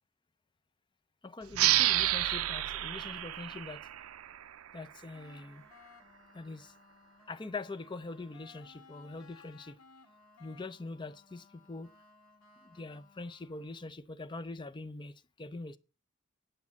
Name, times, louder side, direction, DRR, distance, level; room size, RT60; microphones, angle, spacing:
voice 1, 1.2-3.9 4.7-5.6 6.3-6.7 7.3-9.8 10.4-11.9 12.6-15.8, left 3 dB, 20° left, 0.5 m, -43 dB
sound 1, 1.5-4.8, right 14 dB, 80° right, 0.5 m, -30 dB
sound 2, 5.1-13.9, left 4 dB, 90° left, 2.0 m, -60 dB
9.6 x 5.4 x 7.1 m
head